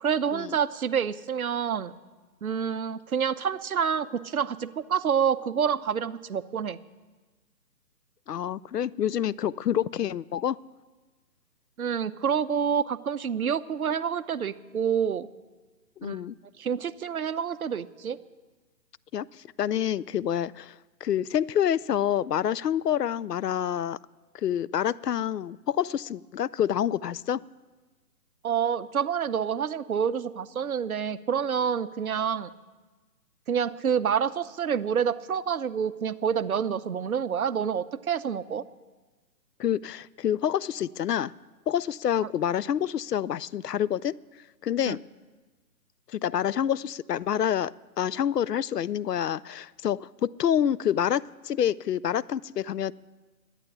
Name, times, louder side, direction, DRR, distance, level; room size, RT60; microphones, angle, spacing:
voice 1, 0.0-1.9 2.4-6.8 11.8-15.3 16.0-16.2 16.6-18.2 28.4-32.5 33.5-38.6 44.9-45.0, right 7 dB, 60° right, 14 dB, 0.7 m, -28 dB
voice 2, 8.3-10.6 16.0-16.3 19.1-19.3 19.6-20.7 21.0-24.0 24.4-27.4 39.6-41.3 41.7-44.2 44.6-45.0 46.1-52.9, left 10 dB, 70° left, 19 dB, 0.6 m, -27 dB
11.5 x 9.9 x 9.7 m, 1.3 s
figure-of-eight pair, 150°, 49 cm